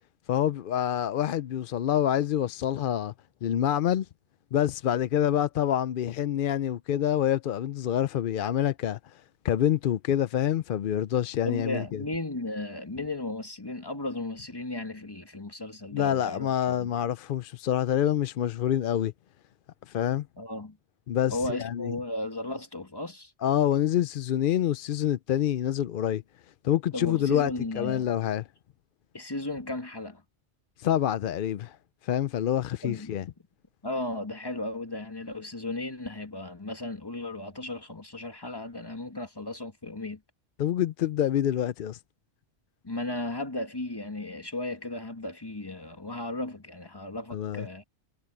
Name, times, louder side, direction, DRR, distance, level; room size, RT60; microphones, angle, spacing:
voice 1, 0.3-3.1 3.4-4.1 4.5-9.0 9.4-12.0 15.9-19.1 19.9-20.3 21.1-21.9 23.4-26.2 26.6-27.5 27.8-28.4 30.8-31.8 32.0-33.2 40.6-42.0 47.3-47.6, left 10 dB, 60° left, 0.6 m, -26 dB
voice 2, 11.4-16.9 20.4-20.8 21.3-23.3 26.9-28.1 29.1-30.2 32.8-33.2 33.8-40.2 42.8-47.8, left 2 dB, 20° left, 2.0 m, -35 dB
omnidirectional pair, 1.2 m